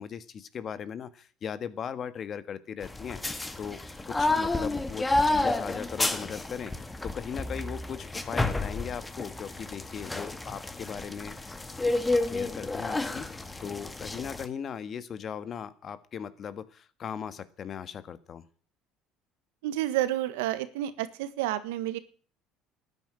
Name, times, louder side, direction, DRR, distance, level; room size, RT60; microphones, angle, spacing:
voice 1, 0.0-3.2 3.6-3.8 4.1-11.3 12.3-18.5, left 7 dB, 45° left, 13 dB, 1.6 m, -38 dB
sound 1, 2.8-14.5, left 2 dB, 15° left, 1.9 m, -30 dB
voice 2, 19.6-22.0, right 14 dB, 85° right, 13 dB, 1.5 m, -30 dB
13.0 x 10.0 x 9.9 m, 0.43 s
supercardioid pair, 85°, 0 cm